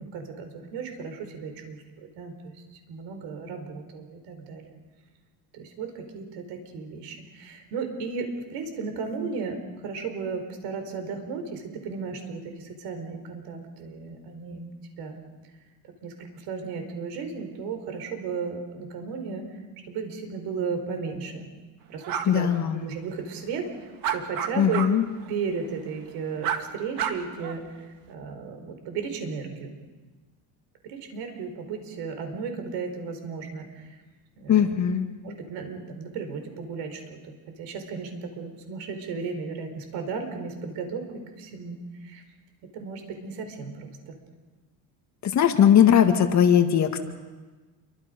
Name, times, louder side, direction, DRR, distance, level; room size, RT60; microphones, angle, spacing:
voice 1, 0.0-2.6 2.9-4.7 5.5-14.7 15.0-15.2 16.0-19.5 19.9-21.5 21.9-24.9 25.3-29.7 30.8-34.0 34.4-34.8 35.2-41.1 41.4-42.2 42.7-44.2, right 5 dB, 75° right, 6 dB, 4.6 m, -35 dB
sound 1, 22.0-22.3 24.0-24.9 25.2-25.3 26.4-26.6 27.0-27.6, right 9 dB, 55° right, 1.9 m, -29 dB
voice 2, 22.3-22.9 24.6-25.1 34.5-35.1 45.2-47.0, left 9 dB, 40° left, 5 dB, 1.9 m, -19 dB
28.5 x 24.0 x 5.3 m, 1.3 s
cardioid pair, 150°, 42 cm